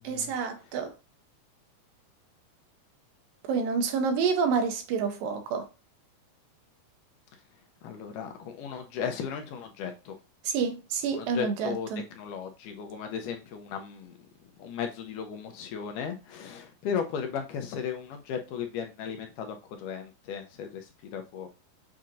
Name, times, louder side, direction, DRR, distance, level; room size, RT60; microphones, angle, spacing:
voice 1, 0.0-0.9 3.5-5.7 10.4-12.0, right 5 dB, 85° right, 2.5 m, -28 dB
voice 2, 7.8-10.2 11.1-11.9 12.1-14.1 14.6-21.5, left 7 dB, 80° left, 2.0 m, -36 dB
7.3 x 2.9 x 2.5 m
omnidirectional pair, 4.0 m